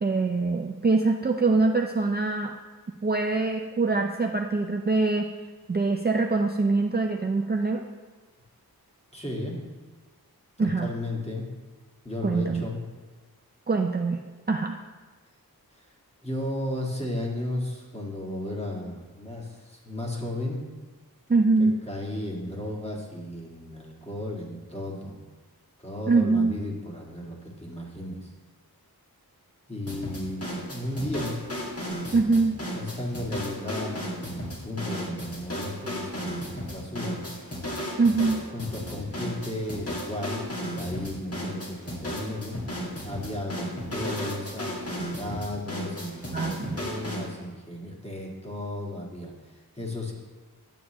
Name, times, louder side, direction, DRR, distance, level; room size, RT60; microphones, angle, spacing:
voice 1, 0.0-2.5 3.0-5.3 5.7-7.8 10.6-10.9 12.2-12.6 13.7-14.2 14.5-14.8 21.3-21.8 26.1-26.6 32.1-32.6 38.0-38.4 46.3-46.8, right 3 dB, 25° right, 3 dB, 0.4 m, -23 dB
voice 2, 9.1-9.6 10.6-11.5 12.0-12.8 15.8-15.9 16.2-20.7 21.6-25.2 25.8-28.3 29.7-31.4 32.7-37.2 38.5-42.6 43.0-50.1, left 1 dB, 15° left, -3 dB, 1.7 m, -34 dB
sound 1, 29.9-47.3, equal, 40° left, 1.4 m, -34 dB
9.5 x 7.4 x 3.0 m, 1.3 s
wide cardioid pair, 50°, 37 cm